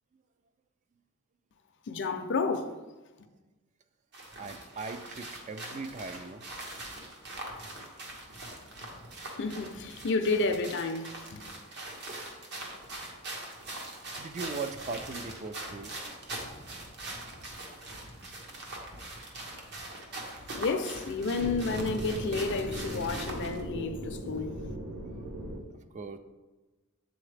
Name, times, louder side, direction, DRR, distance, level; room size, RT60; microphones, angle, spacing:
voice 1, 1.9-2.7 9.4-11.4 20.6-24.5, left 3 dB, 55° left, 0.5 m, -31 dB
sound 1, 4.1-23.6, right 2 dB, 50° right, 0.9 m, -42 dB
voice 2, 4.4-6.5 14.2-16.0 18.5-18.6 19.5-19.6 20.4-20.5 25.9-26.2, right 4 dB, 35° right, 0.3 m, -39 dB
sound 2, 21.3-25.6, right 1 dB, 90° right, 0.8 m, -38 dB
7.7 x 3.9 x 3.3 m
head